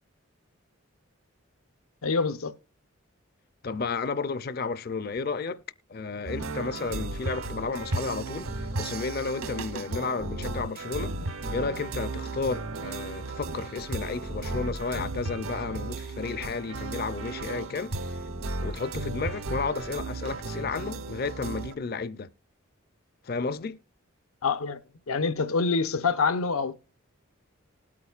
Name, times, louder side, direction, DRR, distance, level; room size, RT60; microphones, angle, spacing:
voice 1, 2.0-2.5 24.4-24.8 25.1-26.7, left 4 dB, 85° left, 0.7 m, -26 dB
voice 2, 3.6-5.6 5.9-8.5 8.8-11.1 11.5-17.9 18.6-22.3 23.2-23.8, left 4 dB, 45° left, 0.4 m, -32 dB
sound 1, 6.3-21.8, right 2 dB, 75° right, 0.8 m, -35 dB
19.5 x 8.5 x 2.4 m
head